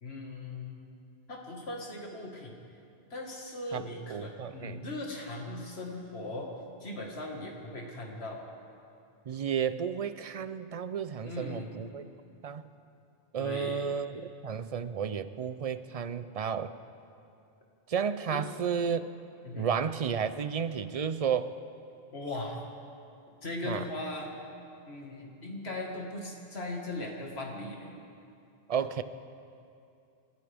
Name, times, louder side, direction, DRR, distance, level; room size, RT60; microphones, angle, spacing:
voice 1, 0.0-0.8 1.3-2.5 3.1-6.5 6.8-8.4 11.2-11.7 13.4-13.9 18.3-18.4 19.4-19.7 22.1-22.6 23.4-24.3 24.9-27.9, left 2 dB, 90° left, 0 dB, 2.1 m, -39 dB
voice 2, 4.1-4.8 9.3-12.0 12.4-12.6 13.3-14.1 14.4-16.7 17.9-19.1 19.5-21.5 23.6-23.9 28.7-29.0, right 7 dB, 45° right, 12 dB, 0.5 m, -32 dB
27.5 x 12.5 x 3.5 m, 2.5 s
omnidirectional pair, 1.0 m